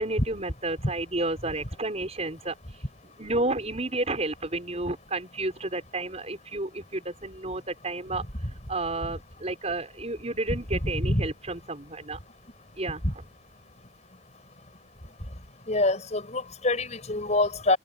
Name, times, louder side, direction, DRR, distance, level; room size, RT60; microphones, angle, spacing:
voice 1, 0.0-2.6 3.0-8.2 8.7-12.2 12.8-13.2, right 2 dB, 35° right, 5.2 m, -31 dB
voice 2, 15.7-17.8, left 2 dB, 40° left, 6.2 m, -25 dB
head